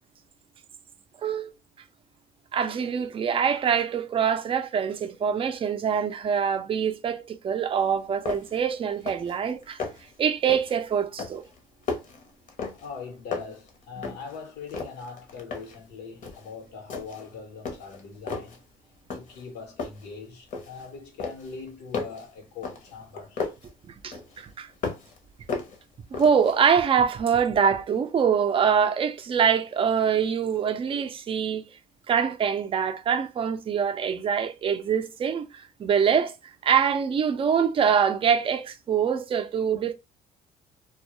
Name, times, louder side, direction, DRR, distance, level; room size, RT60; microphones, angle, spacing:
voice 1, 1.2-1.5 2.5-9.8 10.2-11.4 23.9-24.7 26.1-31.6 32.1-39.9, right 7 dB, 30° right, 0.4 m, -24 dB
sound 1, 7.8-7.9 8.2-8.6 8.9-9.4 9.6-10.1 10.5-10.8 11.2-13.0 13.3-14.4 14.7-15.8 16.2-16.5 16.9-17.3 17.6-18.6 19.1-19.5 19.8-20.9 21.2-23.7 24.1-25.2 25.5-26.5, left 4 dB, 50° left, 0.8 m, -35 dB
voice 2, 12.8-18.6 19.1-23.5, left 5 dB, 85° left, 1.0 m, -41 dB
2.2 x 2.1 x 2.9 m
cardioid pair, 110°, 17 cm